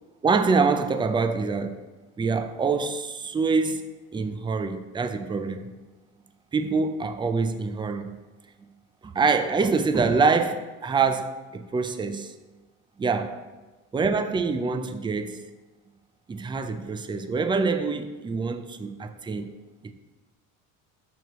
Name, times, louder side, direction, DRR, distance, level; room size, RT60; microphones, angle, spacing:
voice 1, 0.2-1.8 2.2-3.9 4.1-5.7 6.5-8.2 9.0-12.3 13.0-13.4 13.9-15.4 16.3-19.5 19.8-19.9, right 4 dB, 15° right, 9 dB, 0.6 m, -25 dB
12.0 x 6.6 x 3.1 m, 1.3 s
supercardioid pair, 105°, 35 cm